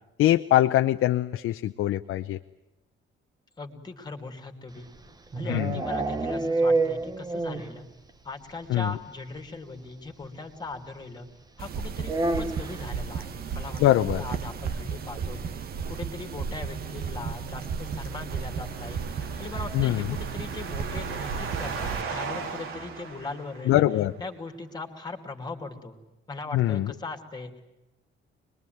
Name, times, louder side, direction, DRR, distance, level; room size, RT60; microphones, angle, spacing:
voice 1, 0.2-2.4 5.5-5.8 8.7-8.9 13.8-14.2 19.7-20.2 23.7-24.1 26.5-26.9, left 14 dB, 85° left, 7 dB, 0.8 m, -23 dB
voice 2, 3.6-4.9 5.3-7.9 8.2-11.3 11.6-15.4 15.9-23.8 24.2-26.0 26.3-27.6, left 3 dB, 20° left, 5 dB, 2.7 m, -39 dB
sound 1, 4.8-7.8 8.1-8.2 8.5-8.6 8.9-9.0 10.2-10.3 12.0-12.9, right 2 dB, 20° right, 1.2 m, -27 dB
sound 2, 11.6-22.0, right 6 dB, 45° right, 1.3 m, -34 dB
sound 3, 17.8-24.0, right 5 dB, 80° right, 3.5 m, -38 dB
26.0 x 21.5 x 9.4 m, 0.98 s
cardioid pair, 175°, 21 cm